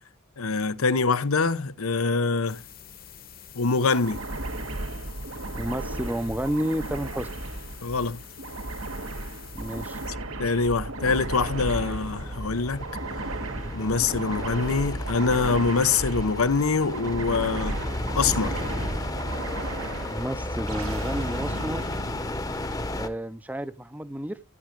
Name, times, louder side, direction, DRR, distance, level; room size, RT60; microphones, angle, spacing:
voice 1, 0.4-2.6 3.5-4.2 7.8-8.2 10.4-12.8 13.7-17.8 18.1-18.6, left 4 dB, 90° left, 0.8 m, -24 dB
sound 1, 2.5-10.1, left 9 dB, 45° left, 1.1 m, -47 dB
sound 2, 3.9-22.8, right 2 dB, 85° right, 1.6 m, -35 dB
voice 2, 5.5-7.3 9.5-10.0 20.1-21.8 22.9-24.4, equal, 10° right, 0.5 m, -31 dB
sound 3, 11.0-23.1, left 1 dB, 15° left, 0.9 m, -34 dB
13.5 x 10.5 x 5.2 m
head